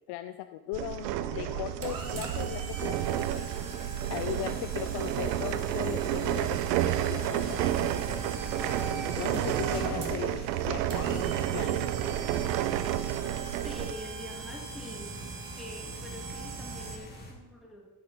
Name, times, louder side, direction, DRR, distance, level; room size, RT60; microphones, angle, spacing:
voice 1, 0.1-3.5 4.1-8.2 9.1-11.9, left 14 dB, 55° left, 10 dB, 0.5 m, -38 dB
sound 1, 0.7-13.9, right 12 dB, 80° right, 0.5 m, -31 dB
sound 2, 1.0-17.0, right 4 dB, 45° right, 1.7 m, -40 dB
sound 3, 2.9-17.3, left 1 dB, 20° left, 2.0 m, -48 dB
voice 2, 13.6-15.2 15.5-17.9, left 1 dB, ahead, -1 dB, 2.1 m, -45 dB
8.0 x 6.9 x 4.0 m, 1.2 s
hypercardioid pair, 55°, 49 cm